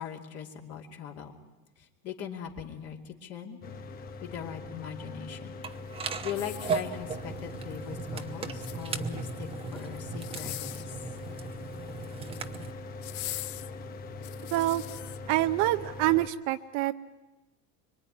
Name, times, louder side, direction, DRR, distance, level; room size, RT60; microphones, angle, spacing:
voice 1, 0.0-1.3 1.8-3.6 4.2-5.6 6.2-11.0, left 8 dB, 45° left, 2 dB, 2.7 m, -40 dB
Mechanical fan, 3.6-16.3, left 3 dB, 25° left, 0.9 m, -42 dB
sound 1, 5.6-12.7, right 5 dB, 15° right, 1.0 m, -37 dB
sound 2, 6.3-7.3 8.4-9.2 10.1-11.0 12.1-12.5 13.0-15.2 15.8-15.9, left 16 dB, 60° left, 0.9 m, -41 dB
voice 2, 14.5-14.8 15.3-16.9, right 16 dB, 50° right, 9 dB, 0.8 m, -26 dB
25.0 x 24.0 x 9.9 m, 1.1 s
cardioid pair, 165°, 36 cm